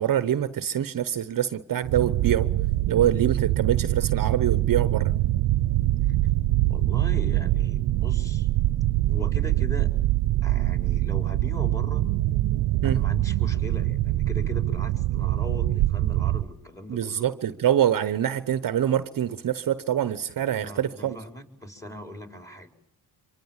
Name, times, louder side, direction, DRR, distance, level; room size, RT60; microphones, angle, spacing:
voice 1, 0.0-2.5 2.9-5.1 12.8-13.0 16.9-21.2, right 10 dB, 50° right, 1.1 m, -25 dB
sound 1, 1.8-16.5, right 15 dB, 80° right, 1.0 m, -24 dB
voice 2, 6.7-8.5 9.1-9.9 10.4-12.1 12.8-17.3 20.5-22.7, left 1 dB, 5° left, 4.7 m, -39 dB
25.5 x 24.5 x 7.4 m
cardioid pair, 75°, 42 cm